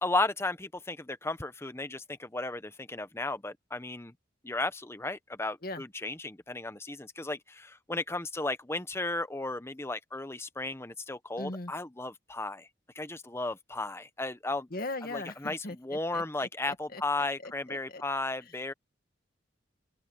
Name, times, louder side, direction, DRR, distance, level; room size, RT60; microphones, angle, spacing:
voice 1, 0.0-4.1 4.4-12.7 12.9-14.7 15.1-18.7, left 2 dB, 15° left, 0.9 m, -34 dB
voice 2, 11.4-11.7 14.7-15.8 16.1-18.0, left 2 dB, 50° left, 2.0 m, -40 dB
open air
head